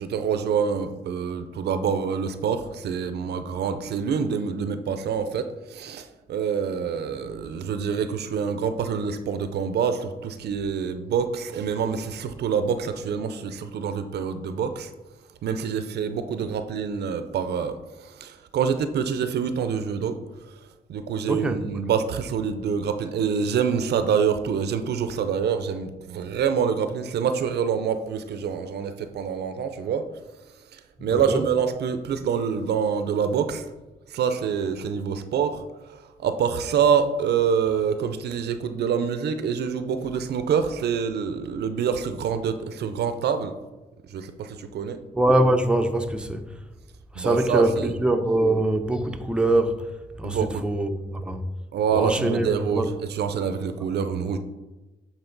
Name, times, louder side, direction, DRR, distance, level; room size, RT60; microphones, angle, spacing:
voice 1, 0.0-14.9 15.4-20.2 20.9-30.1 30.7-33.6 34.1-43.5 44.1-45.0 47.1-47.9 50.2-50.6 51.7-54.4, right 7 dB, 85° right, 10 dB, 0.5 m, -26 dB
voice 2, 21.3-21.6 31.0-31.4 45.1-46.6 47.1-49.9 50.2-51.5 51.9-52.9, right 1 dB, 5° right, 5 dB, 0.6 m, -23 dB
8.1 x 4.2 x 3.9 m, 1.1 s
cardioid pair, 80°, 17 cm